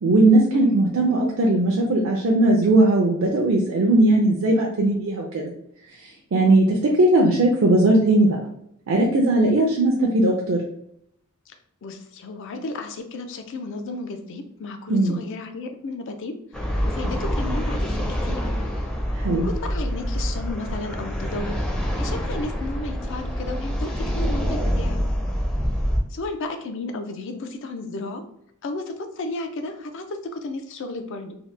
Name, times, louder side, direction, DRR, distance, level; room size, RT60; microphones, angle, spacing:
voice 1, 0.0-5.5 6.0-8.3 8.9-10.6 14.9-15.2 19.1-19.5, right 2 dB, 65° right, -1 dB, 0.4 m, -18 dB
voice 2, 0.5-0.8 11.5-11.6 11.8-16.3 16.8-18.6 19.3-21.6 22.0-25.0 26.1-28.2 28.6-31.4, left 2 dB, 60° left, 6 dB, 0.4 m, -33 dB
sound 1, 16.5-26.0, equal, 5° left, 0.4 m, -26 dB
2.8 x 2.1 x 3.2 m, 0.73 s
head